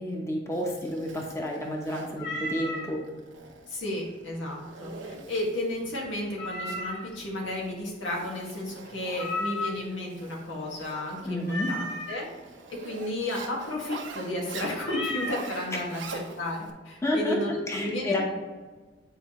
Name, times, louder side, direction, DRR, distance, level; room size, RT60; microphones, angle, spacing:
voice 1, 0.0-3.0 11.2-11.7 15.7-15.8 17.0-17.4 17.7-18.3, left 1 dB, 15° left, 0 dB, 1.0 m, -30 dB
Zipper (clothing), 0.5-16.7, right 3 dB, 80° right, 0.9 m, -45 dB
Meow, 2.2-2.9 6.4-7.2 9.2-10.0 11.5-12.2 14.8-15.5, left 2 dB, 60° left, 1.5 m, -33 dB
voice 2, 3.7-12.3 12.8-18.3, left 1 dB, 90° left, -2 dB, 1.8 m, -33 dB
8.9 x 4.8 x 3.1 m, 1.3 s
head